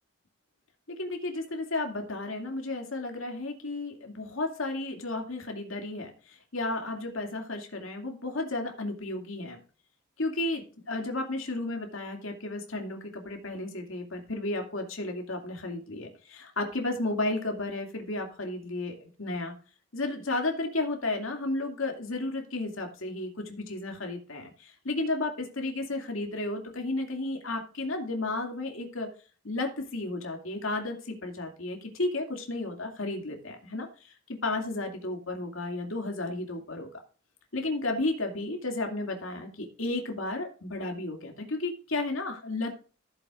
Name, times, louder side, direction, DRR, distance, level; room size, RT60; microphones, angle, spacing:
voice 1, 0.9-9.6 10.2-19.5 19.9-29.1 29.4-34.1 34.4-36.9 37.5-42.8, left 2 dB, 80° left, 3 dB, 2.5 m, -33 dB
15.0 x 7.8 x 2.5 m, 0.37 s
head